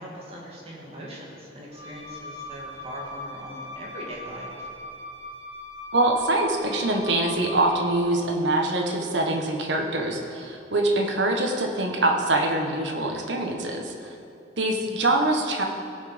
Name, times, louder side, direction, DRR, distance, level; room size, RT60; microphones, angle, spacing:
voice 1, 0.0-4.7 14.8-14.9, equal, 35° right, -4 dB, 2.5 m, -40 dB
Wind instrument woodwind instrument, 1.7-8.0, left 2 dB, 85° left, 3.0 m, -40 dB
voice 2, 5.9-14.1 14.6-15.6, right 2 dB, 70° right, 2 dB, 1.4 m, -24 dB
17.5 x 5.8 x 5.3 m, 2.6 s
head